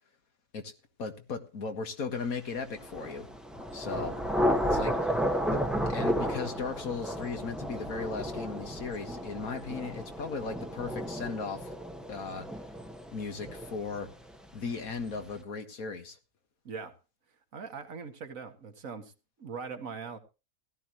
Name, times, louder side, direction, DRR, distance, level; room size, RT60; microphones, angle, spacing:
voice 1, 1.0-3.3 3.7-4.2 4.6-5.2 5.5-11.7 12.1-12.5 13.1-14.1 14.5-16.2, left 4 dB, 80° left, 2.0 m, -37 dB
Thunder / Rain, 2.7-14.3, equal, ahead, 0.9 m, -33 dB
voice 2, 16.7-17.0 17.5-19.1 19.4-20.2, right 5 dB, 70° right, 1.8 m, -41 dB
16.5 x 12.5 x 3.0 m
omnidirectional pair, 1.5 m